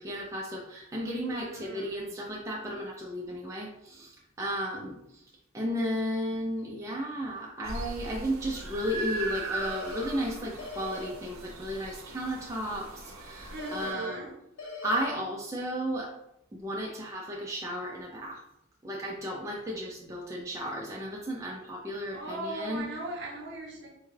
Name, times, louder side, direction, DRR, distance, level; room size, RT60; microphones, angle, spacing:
voice 1, 0.0-5.0 5.5-12.9 13.2-14.3 14.8-16.1 16.5-18.4 18.8-22.9, equal, 15° right, -2 dB, 0.4 m, -34 dB
voice 2, 1.2-2.1 13.5-14.3 22.1-23.9, right 2 dB, 60° right, -1 dB, 0.8 m, -39 dB
sound 1, 7.6-13.9, right 3 dB, 90° right, 0.5 m, -39 dB
sound 2, 9.6-10.1 10.6-11.1 13.6-14.1 14.6-15.1, left 3 dB, 75° left, 0.7 m, -40 dB
3.6 x 2.2 x 3.2 m, 0.83 s
head